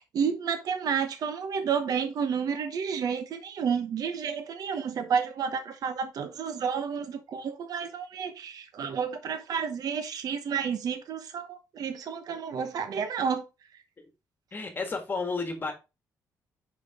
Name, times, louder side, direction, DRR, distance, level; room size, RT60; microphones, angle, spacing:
voice 1, 0.0-13.4, right 6 dB, 65° right, 1.0 m, -30 dB
voice 2, 14.5-15.7, left 4 dB, 30° left, 1.8 m, -31 dB
5.9 x 5.2 x 3.6 m
cardioid pair, 95°, 7 cm